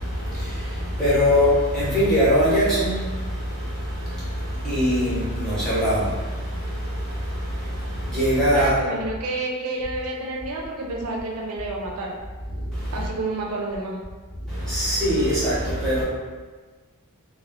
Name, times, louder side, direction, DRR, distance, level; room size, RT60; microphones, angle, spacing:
voice 1, 0.0-8.8 12.5-13.1 14.4-16.0, equal, 5° left, -10 dB, 0.8 m, -23 dB
voice 2, 8.5-12.1 12.9-14.0, right 2 dB, 75° right, -1 dB, 0.4 m, -29 dB
2.2 x 2.1 x 3.5 m, 1.4 s
head